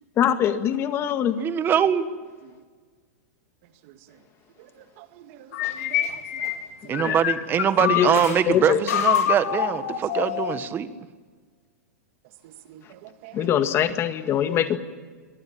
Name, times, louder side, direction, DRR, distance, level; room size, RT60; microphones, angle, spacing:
voice 1, 0.2-1.4 6.9-7.2 7.8-8.8 13.3-14.8, left 9 dB, 30° left, 9 dB, 1.9 m, -23 dB
voice 2, 1.4-2.1 6.9-10.9, right 8 dB, 25° right, 12 dB, 1.6 m, -23 dB
voice 3, 3.8-4.2 4.6-6.5 6.8-7.1 12.4-13.5, right 12 dB, 55° right, 8 dB, 2.1 m, -47 dB
sound 1, 5.5-8.4 8.9-10.7, left 10 dB, 65° left, 3.3 m, -26 dB
24.5 x 18.5 x 8.7 m, 1.5 s
hypercardioid pair, 135°, 9 cm